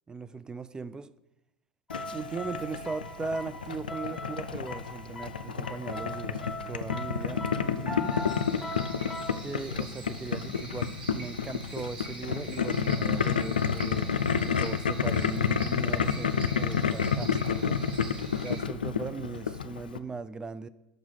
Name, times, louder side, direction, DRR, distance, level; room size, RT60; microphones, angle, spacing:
voice 1, 0.1-1.1 2.1-8.2 9.4-14.1 14.4-17.8 18.4-20.7, right 4 dB, 15° right, 0.3 m, -38 dB
Boiling, 1.9-20.0, left 6 dB, 80° left, 0.4 m, -30 dB
sound 1, 1.9-9.3, left 1 dB, ahead, 1.1 m, -40 dB
sound 2, 8.0-18.6, right 2 dB, 80° right, 2.1 m, -45 dB
6.2 x 4.7 x 6.3 m
figure-of-eight pair, 75°, 5 cm